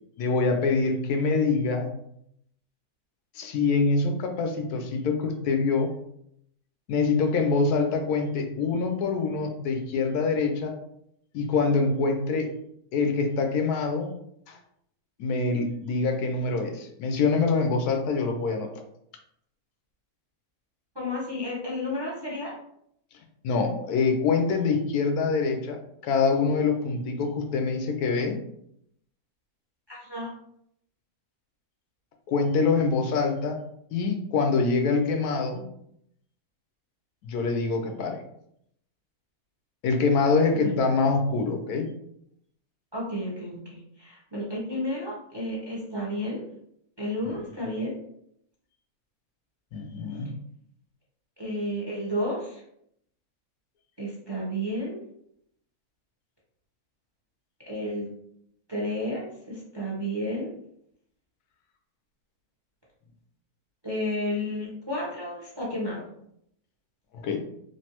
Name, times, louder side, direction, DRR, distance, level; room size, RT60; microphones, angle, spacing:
voice 1, 0.2-1.9 3.3-5.9 6.9-10.8 11.3-12.5 12.9-14.1 14.5-14.6 15.2-18.7 23.4-28.4 32.3-33.6 33.9-35.6 37.2-38.2 39.8-41.9 49.7-50.3 67.1-67.4, left 4 dB, 85° left, 4 dB, 1.1 m, -25 dB
voice 2, 20.9-22.5 29.9-30.3 40.6-40.8 42.9-46.4 47.0-47.9 51.4-52.6 54.0-55.0 57.7-58.1 58.7-60.5 63.8-66.0, left 1 dB, 25° right, -5 dB, 0.5 m, -32 dB
3.3 x 2.5 x 2.8 m, 0.73 s
omnidirectional pair, 1.6 m